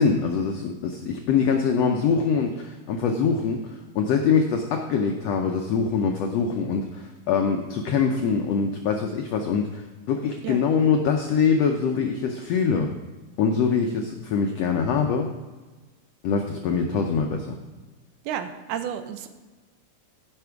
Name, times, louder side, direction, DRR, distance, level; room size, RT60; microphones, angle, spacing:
voice 1, 0.0-12.9 13.4-15.3 16.2-17.6, left 6 dB, 80° left, 3 dB, 1.5 m, -24 dB
voice 2, 18.3-19.3, right 9 dB, 75° right, 8 dB, 2.1 m, -31 dB
14.5 x 6.0 x 4.6 m, 1.2 s
omnidirectional pair, 3.8 m